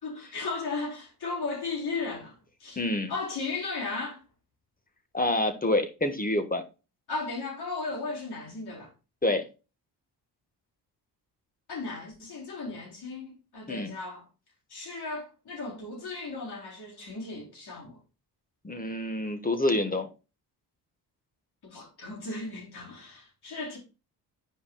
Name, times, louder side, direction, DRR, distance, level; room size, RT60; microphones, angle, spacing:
voice 1, 0.0-2.3 2.6-2.8 3.1-4.2 7.1-8.9 11.7-14.2 14.7-18.0 21.6-23.8, left 3 dB, 65° left, 4.0 m, -36 dB
voice 2, 2.8-3.1 5.1-6.6 9.2-9.4 13.7-13.9 18.6-20.1, left 1 dB, 20° left, 1.4 m, -27 dB
10.0 x 5.0 x 2.3 m
cardioid pair, 65°, 42 cm